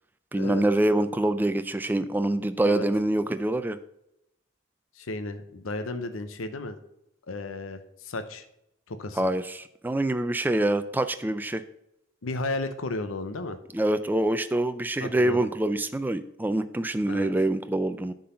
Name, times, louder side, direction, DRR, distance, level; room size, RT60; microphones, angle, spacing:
voice 1, 0.3-3.8 9.2-11.6 13.7-18.1, right 1 dB, 10° right, 10 dB, 0.3 m, -25 dB
voice 2, 4.9-6.8 7.3-8.5 8.9-9.3 12.2-13.6 15.0-15.5 17.1-17.3, left 2 dB, 90° left, 9 dB, 0.7 m, -34 dB
10.0 x 4.0 x 5.6 m, 0.81 s
head